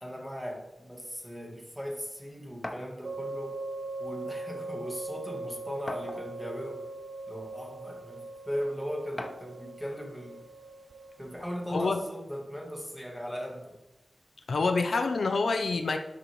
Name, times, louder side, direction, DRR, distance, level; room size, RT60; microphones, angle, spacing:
voice 1, 0.0-3.6 4.0-6.9 7.3-10.4 11.2-13.8, equal, ahead, 1 dB, 2.0 m, -38 dB
sound 1, 2.6-2.9 4.1-4.2 4.6-4.7 5.9-6.5 7.4-7.5 9.2-9.6, left 1 dB, 25° left, 0.9 m, -39 dB
sound 2, 3.0-11.5, right 2 dB, 60° right, 0.5 m, -41 dB
voice 2, 11.7-12.0 14.5-16.0, left 3 dB, 80° left, 6 dB, 0.6 m, -27 dB
12.0 x 8.2 x 3.2 m, 1.0 s
wide cardioid pair, 70°, 0 cm